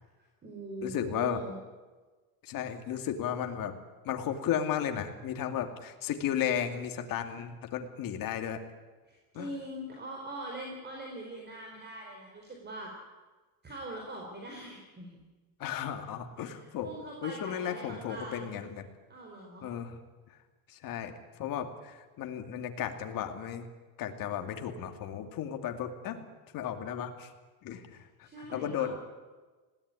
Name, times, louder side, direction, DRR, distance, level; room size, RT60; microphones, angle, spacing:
voice 1, 0.2-1.6 9.0-12.9 13.6-15.2 16.4-18.5 19.1-19.7 27.9-29.0, right 1 dB, 20° right, 0 dB, 4.2 m, -42 dB
voice 2, 0.8-1.4 2.4-3.8 4.0-8.6 9.3-9.5 15.6-16.9 17.2-18.9 19.6-20.0 20.7-21.1 21.4-23.7 24.0-26.2 26.5-27.3 27.6-28.0 28.4-29.0, left 9 dB, 45° left, 6 dB, 2.6 m, -34 dB
20.0 x 17.5 x 9.8 m, 1.3 s
supercardioid pair, 130°, 46 cm